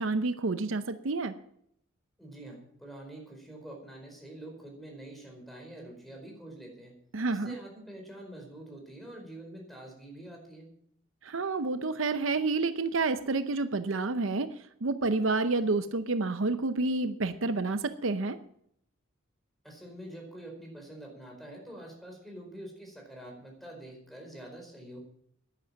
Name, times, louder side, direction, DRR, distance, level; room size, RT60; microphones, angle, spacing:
voice 1, 0.0-1.3 7.1-7.6 11.2-18.4, right 3 dB, 70° right, 11 dB, 0.7 m, -29 dB
voice 2, 2.2-6.9 7.3-10.7 19.6-25.0, right 1 dB, ahead, 1 dB, 4.7 m, -46 dB
11.0 x 10.5 x 7.5 m, 0.69 s
head